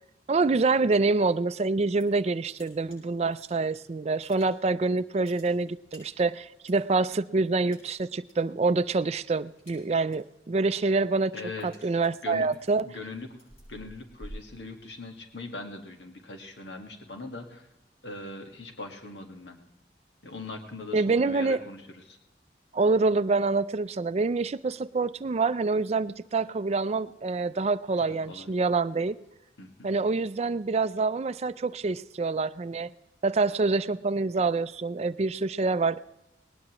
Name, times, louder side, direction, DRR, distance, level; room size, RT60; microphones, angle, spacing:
voice 1, 0.3-12.9 20.9-21.6 22.7-29.2 29.8-32.9 33.2-36.1, right 3 dB, 35° right, 15 dB, 0.4 m, -26 dB
sound 1, 1.7-2.2 2.5-3.8 4.1-4.8 5.1-7.1 7.7-8.3 8.6-9.0 9.3-10.3 10.7-15.2, equal, 35° left, 7.7 m, -50 dB
voice 2, 11.3-11.7 12.2-12.5 12.8-13.3 13.7-17.7 18.0-19.6 20.2-22.2 28.0-28.5 29.6-29.9, left 3 dB, 85° left, 3 dB, 1.6 m, -41 dB
19.5 x 19.0 x 3.0 m, 0.92 s
head